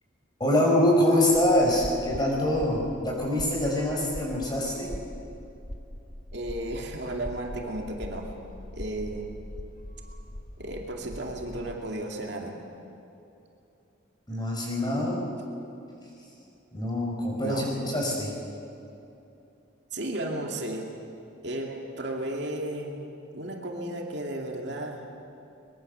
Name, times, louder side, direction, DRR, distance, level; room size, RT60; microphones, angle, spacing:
voice 1, 0.4-4.9 14.3-15.3 16.7-18.3, left 1 dB, 20° left, -2 dB, 5.6 m, -25 dB
sound 1, 1.3-11.8, equal, 40° left, 1.9 m, -42 dB
voice 2, 6.3-8.3 8.7-9.3 10.6-12.6 17.4-17.7 19.9-20.9 21.4-23.0 23.3-25.1, right 1 dB, 60° right, 1 dB, 2.5 m, -34 dB
23.5 x 22.0 x 7.0 m, 2.8 s
head